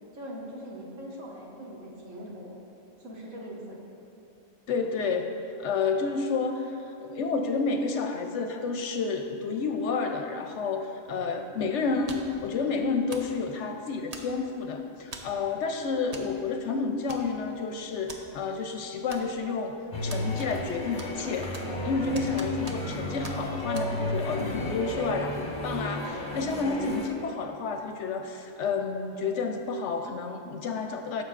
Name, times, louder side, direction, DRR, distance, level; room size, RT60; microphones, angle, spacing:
voice 1, 0.1-2.6 3.0-3.8, equal, 70° right, -3 dB, 1.7 m, -41 dB
voice 2, 4.7-5.3 5.6-19.8 20.0-21.5 21.8-31.2, left 4 dB, 70° left, 5 dB, 0.8 m, -30 dB
sound 1, 12.1-12.4 13.1-13.4 14.1-14.5 15.1-15.4 16.1-16.3 16.6-16.7 17.1-17.6 18.1-18.2 19.1-19.6 20.1-20.7 21.0-21.8 22.1-23.0 23.2-23.4 23.7-23.9, right 3 dB, 40° right, 0.6 m, -43 dB
sound 2, 19.9-27.1, left 1 dB, 25° left, 0.8 m, -33 dB
14.0 x 7.2 x 2.4 m, 2.8 s
omnidirectional pair, 1.4 m